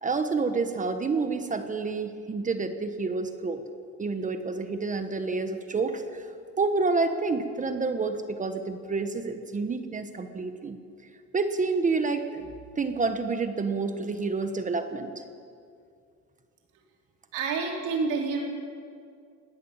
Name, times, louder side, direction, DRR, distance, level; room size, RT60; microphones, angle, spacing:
voice 1, 0.0-3.6 4.0-6.3 6.6-10.8 11.3-12.4 12.7-15.2, right 4 dB, 25° right, 8 dB, 1.2 m, -28 dB
voice 2, 17.3-18.4, right 4 dB, 80° right, 0 dB, 4.3 m, -28 dB
21.0 x 17.0 x 7.3 m, 2.3 s
cardioid pair, 135°, 30 cm